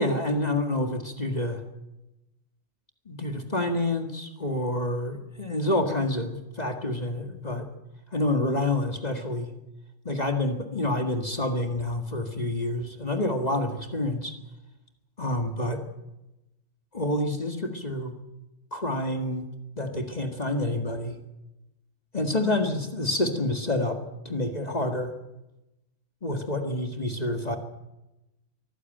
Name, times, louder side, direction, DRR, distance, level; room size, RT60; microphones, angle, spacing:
voice 1, 0.0-1.6 3.1-7.7 8.1-9.5 10.1-14.3 15.2-15.8 16.9-18.1 18.7-19.5 19.8-21.2 22.1-25.1 26.2-27.6, left 1 dB, 35° left, 5 dB, 1.9 m, -28 dB
23.5 x 14.5 x 9.1 m, 0.96 s
omnidirectional pair, 1.3 m